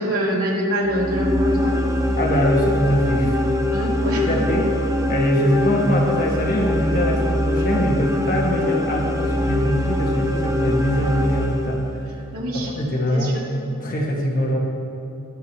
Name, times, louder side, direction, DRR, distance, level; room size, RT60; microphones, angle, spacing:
voice 1, 0.0-1.8 3.7-4.3 12.3-12.7 13.1-13.4, equal, 85° right, -4 dB, 2.8 m, -24 dB
sound 1, 0.8-12.2, left 1 dB, 15° right, 0.7 m, -23 dB
voice 2, 2.2-3.3 4.3-4.7 5.1-12.0 12.5-13.4 13.8-14.6, equal, 40° left, -2 dB, 1.8 m, -22 dB
20.5 x 11.5 x 3.1 m, 2.7 s
head